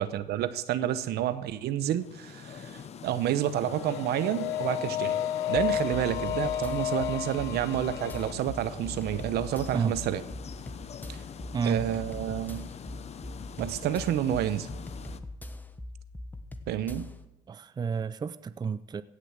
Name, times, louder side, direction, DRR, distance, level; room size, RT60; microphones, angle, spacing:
voice 1, 0.0-5.2 5.5-10.2 11.1-11.2 11.6-12.7 13.6-14.7 16.7-17.1, right 11 dB, 75° right, 14 dB, 0.9 m, -29 dB
sound 1, 1.8-15.2, left 7 dB, 40° left, 0.8 m, -44 dB
sound 2, 3.6-8.3, left 10 dB, 90° left, 0.8 m, -32 dB
sound 3, 5.5-17.2, left 1 dB, 10° left, 1.0 m, -42 dB
voice 2, 11.5-11.8 17.5-19.0, right 6 dB, 25° right, 14 dB, 0.5 m, -30 dB
17.0 x 6.9 x 7.5 m, 0.94 s
cardioid pair, 110°, 17 cm